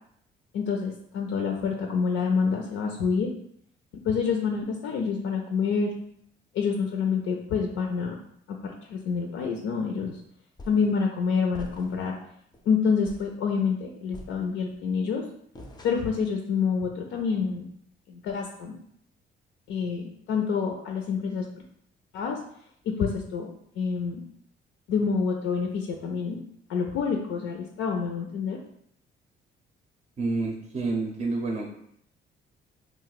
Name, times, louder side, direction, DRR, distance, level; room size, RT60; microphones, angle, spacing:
voice 1, 0.5-3.3 3.9-5.9 6.5-8.2 8.5-10.2 10.7-12.2 12.7-15.2 15.8-17.6 18.1-18.8 19.7-21.5 22.1-22.4 22.9-23.5 23.8-24.2 24.9-26.4 26.7-28.6, left 5 dB, 80° left, 2 dB, 0.4 m, -27 dB
sound 1, 10.6-11.0 11.5-12.1 12.5-12.7 13.1-13.4 14.1-14.8 15.6-16.3, left 1 dB, 20° left, 0.4 m, -45 dB
voice 2, 30.2-31.6, right 3 dB, 35° right, 1 dB, 0.5 m, -28 dB
2.4 x 2.1 x 3.9 m, 0.70 s
cardioid pair, 90°, 20 cm